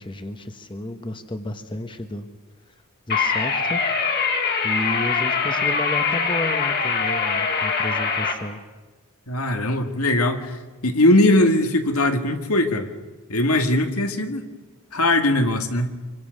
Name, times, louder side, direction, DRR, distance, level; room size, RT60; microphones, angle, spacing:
voice 1, 0.0-2.3 3.1-3.8 4.6-8.6, left 1 dB, 20° left, 8 dB, 1.2 m, -32 dB
sound 1, 3.1-8.3, left 5 dB, 45° left, 2.7 m, -23 dB
voice 2, 9.3-12.9 13.3-14.4 14.9-16.0, left 1 dB, 80° left, 6 dB, 2.2 m, -20 dB
25.5 x 25.0 x 6.6 m, 1.2 s
head